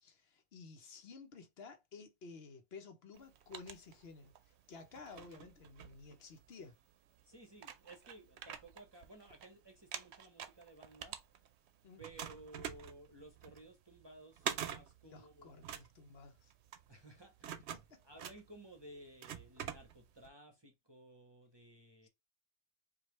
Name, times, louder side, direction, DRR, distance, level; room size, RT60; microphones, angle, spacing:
voice 1, 0.0-6.8 11.8-12.0 15.0-16.5 17.9-18.0 22.0-22.1, left 4 dB, 65° left, 1.0 m, -54 dB
sound 1, 3.1-4.5 4.9-6.6 7.2-7.3 7.6-9.5 9.8-11.7 12.0-20.3, right 9 dB, 80° right, 0.9 m, -46 dB
voice 2, 7.2-11.2 12.0-15.7 16.9-17.7 18.0-22.1, right 1 dB, 25° right, 0.7 m, -56 dB
4.8 x 2.3 x 3.0 m
omnidirectional pair, 1.1 m